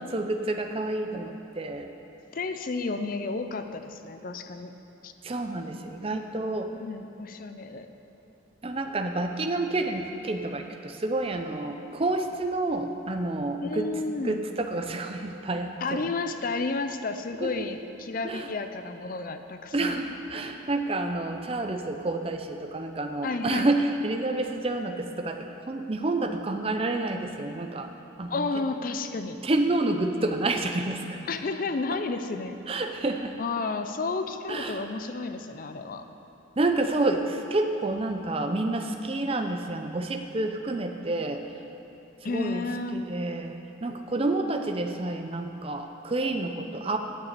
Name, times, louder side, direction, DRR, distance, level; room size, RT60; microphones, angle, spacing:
voice 1, 0.1-1.9 5.2-6.7 8.6-13.9 14.2-16.0 17.4-17.5 18.2-18.5 19.7-27.9 28.2-28.4 29.4-31.3 31.9-32.0 32.7-33.4 34.5-34.8 36.6-41.4 42.2-42.7 42.9-43.6 43.8-47.0, right 2 dB, 30° right, 5 dB, 0.5 m, -29 dB
voice 2, 2.3-4.7 5.0-5.1 6.8-7.9 13.6-14.4 15.8-20.0 23.2-23.7 28.3-29.4 31.3-32.6 33.4-36.0 42.2-43.0, left 3 dB, 45° left, 8 dB, 0.5 m, -31 dB
8.8 x 6.6 x 8.3 m, 2.9 s
head